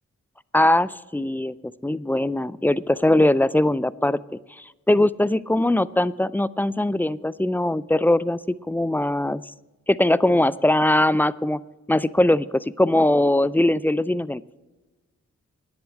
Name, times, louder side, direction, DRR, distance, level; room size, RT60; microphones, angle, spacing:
voice 1, 0.5-1.5 1.8-4.2 4.6-8.4 8.7-9.4 9.9-11.6 11.9-14.4, left 1 dB, 5° left, 18 dB, 0.3 m, -21 dB
10.5 x 8.1 x 7.7 m, 1.2 s
cardioid pair, 65°, 31 cm